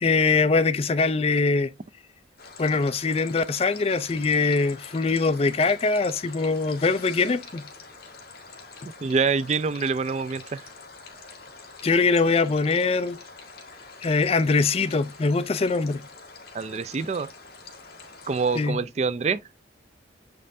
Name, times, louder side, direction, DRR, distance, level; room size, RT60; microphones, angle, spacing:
voice 1, 0.0-1.7 2.6-7.6 11.8-13.2 14.0-16.0 18.5-18.8, left 4 dB, 30° left, 0.4 m, -22 dB
sound 1, 2.4-18.7, left 4 dB, 55° left, 1.7 m, -45 dB
voice 2, 9.0-10.6 16.5-17.3 18.3-19.4, right 5 dB, 35° right, 0.4 m, -25 dB
7.5 x 5.3 x 2.6 m
head